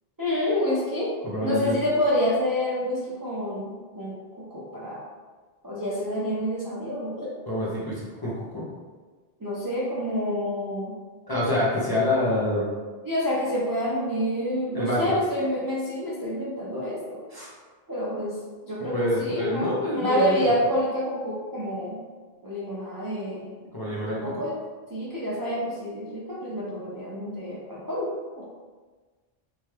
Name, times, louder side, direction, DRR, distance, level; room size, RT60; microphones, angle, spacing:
voice 1, 0.2-1.1 1.4-5.0 5.6-7.3 9.4-10.9 13.0-17.3 17.9-18.4 18.6-22.0 22.4-23.5 24.1-24.5 24.9-28.1 28.4-28.5, equal, 35° right, -8 dB, 0.3 m, -28 dB
voice 2, 1.2-1.8 7.5-8.6 11.3-12.7 14.7-15.1 17.3-17.5 18.9-20.5 23.7-24.3, left 1 dB, 30° left, -8 dB, 0.5 m, -26 dB
3.0 x 2.2 x 3.2 m, 1.4 s
omnidirectional pair, 1.0 m